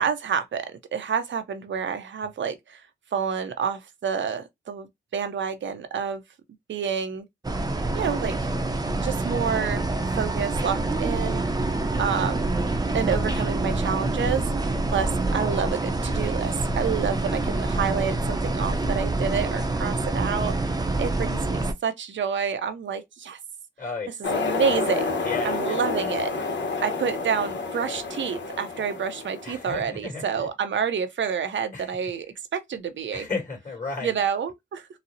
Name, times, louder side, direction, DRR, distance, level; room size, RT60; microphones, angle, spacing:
voice 1, 0.0-2.8 3.1-6.2 6.7-7.3 7.9-8.5 9.0-9.8 10.1-11.4 12.0-12.5 12.9-23.4 24.2-26.3 26.8-33.3 34.0-34.9, right 7 dB, 80° right, 0.6 m, -29 dB
sound 1, 7.4-21.7, right 2 dB, 20° right, 0.6 m, -26 dB
sound 2, 24.2-29.8, left 3 dB, 75° left, 0.9 m, -29 dB
voice 2, 25.2-25.8 29.4-30.5 31.7-31.9 33.1-34.1, left 4 dB, 45° left, 2.3 m, -33 dB
4.0 x 2.0 x 2.6 m
cardioid pair, 70°, 19 cm